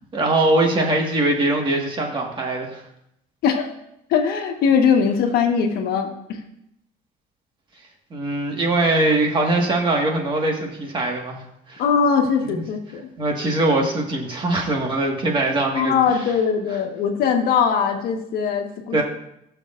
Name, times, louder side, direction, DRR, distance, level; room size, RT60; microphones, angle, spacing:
voice 1, 0.1-2.8 8.1-11.8 12.4-12.6 13.2-16.0 18.9-19.0, right 2 dB, 30° right, 1 dB, 1.8 m, -22 dB
voice 2, 4.1-6.4 11.8-13.1 15.7-19.0, left 6 dB, 70° left, 3 dB, 1.4 m, -21 dB
19.5 x 6.6 x 2.6 m, 0.79 s
cardioid pair, 155°, 16 cm